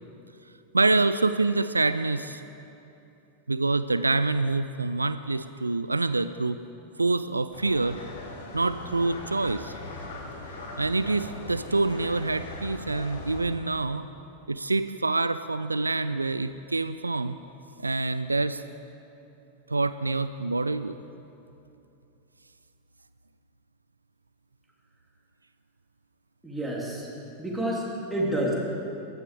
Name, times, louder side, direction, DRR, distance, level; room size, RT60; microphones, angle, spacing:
voice 1, 0.7-2.4 3.5-6.6 7.0-8.0 8.5-9.7 10.8-14.1 14.5-17.4 17.8-18.6 19.7-21.0, right 3 dB, 80° right, 13 dB, 0.3 m, -26 dB
sound 1, 7.5-13.4, left 2 dB, 60° left, 1.9 m, -40 dB
voice 2, 26.4-27.1 27.4-27.8 28.1-28.5, right 1 dB, 5° right, -4 dB, 3.1 m, -28 dB
15.0 x 11.5 x 5.0 m, 2.8 s
figure-of-eight pair, 90°, 0 cm